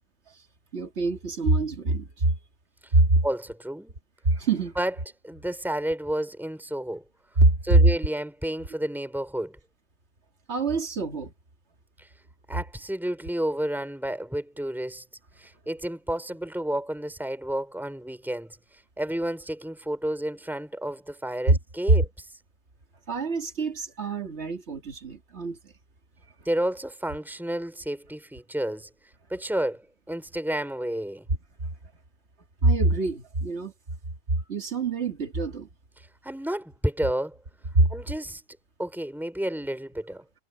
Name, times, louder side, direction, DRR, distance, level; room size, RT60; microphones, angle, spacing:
voice 1, 0.7-2.1 2.9-3.1 4.3-4.7 7.4-7.5 10.5-11.3 21.5-21.6 23.1-25.6 32.6-33.7 34.5-35.7 37.7-37.9, right 2 dB, 55° right, 2.6 m, -24 dB
voice 2, 3.2-3.9 4.8-5.0 5.2-7.0 7.6-9.6 12.0-12.1 12.5-15.0 15.4-18.6 19.0-22.3 26.4-28.9 29.3-31.2 36.0-37.4 37.9-38.4 38.8-40.2, right 1 dB, ahead, 4.7 m, -31 dB
omnidirectional pair, 1.4 m